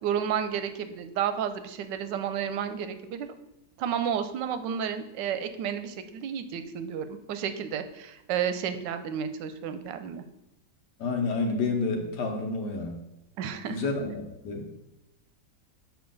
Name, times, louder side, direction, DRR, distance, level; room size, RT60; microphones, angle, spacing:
voice 1, 0.0-3.3 3.8-10.2 13.4-13.8, right 8 dB, 90° right, 10 dB, 1.3 m, -31 dB
voice 2, 11.0-12.9 13.7-14.1 14.4-14.6, left 3 dB, 70° left, 2 dB, 1.6 m, -29 dB
7.1 x 5.0 x 3.8 m, 0.91 s
omnidirectional pair, 1.9 m